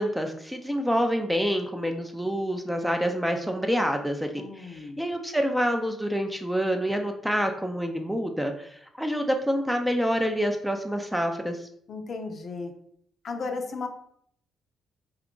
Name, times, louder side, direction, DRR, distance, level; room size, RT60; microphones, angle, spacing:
voice 1, 0.0-11.7, equal, 5° right, 5 dB, 0.4 m, -27 dB
voice 2, 4.4-5.0 11.9-12.7 13.2-13.9, left 4 dB, 50° left, 5 dB, 0.5 m, -35 dB
2.9 x 2.3 x 3.7 m, 0.68 s
cardioid pair, 90°, 0 cm